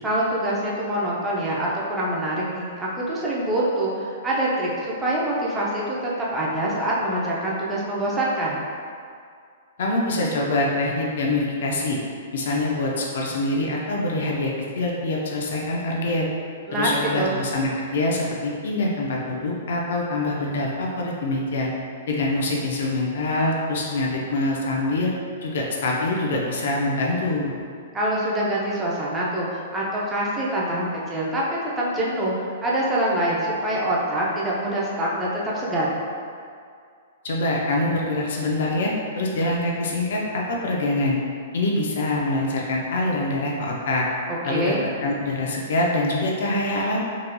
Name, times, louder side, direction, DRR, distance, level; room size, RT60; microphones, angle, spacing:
voice 1, 0.0-8.6 16.7-17.3 27.9-31.4 31.8-35.9 44.3-44.9, right 1 dB, 15° right, -6 dB, 0.6 m, -25 dB
voice 2, 9.8-12.0 12.3-16.3 16.7-21.7 22.1-25.1 25.4-27.5 37.2-41.2 41.5-44.1 44.4-44.8 45.0-47.0, left 2 dB, 70° left, -2 dB, 0.6 m, -24 dB
3.9 x 2.8 x 2.2 m, 2.3 s
hypercardioid pair, 130°, 0 cm